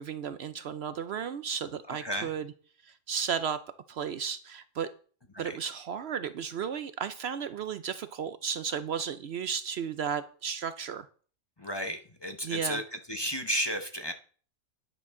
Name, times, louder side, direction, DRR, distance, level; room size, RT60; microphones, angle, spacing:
voice 1, 0.0-2.5 2.8-3.6 3.9-4.9 5.4-11.1 12.4-12.8, right 7 dB, 65° right, 12 dB, 0.8 m, -34 dB
voice 2, 1.9-2.3 5.3-5.6 11.6-12.8 13.1-14.1, equal, 25° left, 6 dB, 0.8 m, -33 dB
10.0 x 10.0 x 3.7 m, 0.43 s
omnidirectional pair, 1.3 m